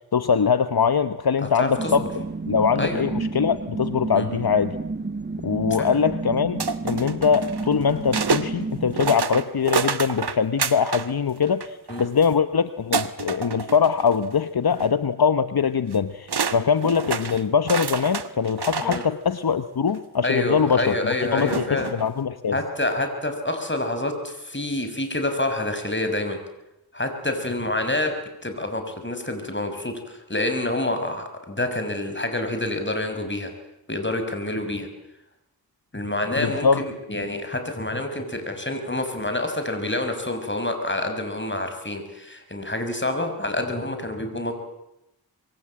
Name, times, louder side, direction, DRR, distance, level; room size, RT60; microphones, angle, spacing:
voice 1, 0.1-2.1 2.5-4.7 5.4-22.6 36.4-36.8, left 6 dB, 65° left, 12 dB, 1.1 m, -22 dB
voice 2, 1.6-2.1 2.8-3.0 4.1-4.3 5.8-6.0 11.9-12.0 18.8-19.0 20.2-21.9 22.5-26.4 26.9-28.1 28.4-33.5 33.9-34.9 35.9-44.5, left 1 dB, 30° left, 6 dB, 6.2 m, -27 dB
sound 1, 1.8-9.2, right 3 dB, 25° right, 1.4 m, -31 dB
sound 2, 6.6-8.5 8.9-11.1 11.4-12.3 12.9-14.3 14.7-14.9 15.9-16.0 16.3-19.1 19.9-20.0 21.4-22.1, right 5 dB, 80° right, 1.4 m, -28 dB
26.0 x 23.0 x 8.9 m, 0.88 s
cardioid pair, 45°, 39 cm